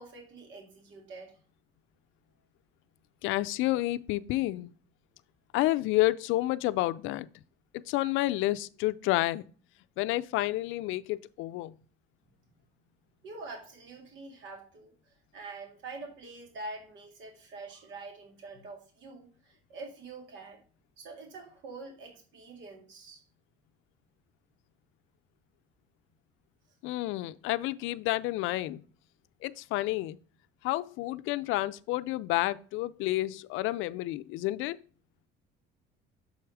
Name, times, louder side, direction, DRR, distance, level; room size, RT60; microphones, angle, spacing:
voice 1, 0.0-1.3 13.2-20.6 21.0-23.2, right 3 dB, 70° right, 2.2 m, -45 dB
voice 2, 3.2-4.7 5.5-7.3 7.9-9.4 10.0-11.8 26.8-28.8 29.4-30.2 30.6-34.8, left 17 dB, 80° left, 0.5 m, -30 dB
7.0 x 4.6 x 4.8 m
cardioid pair, 125°, 20 cm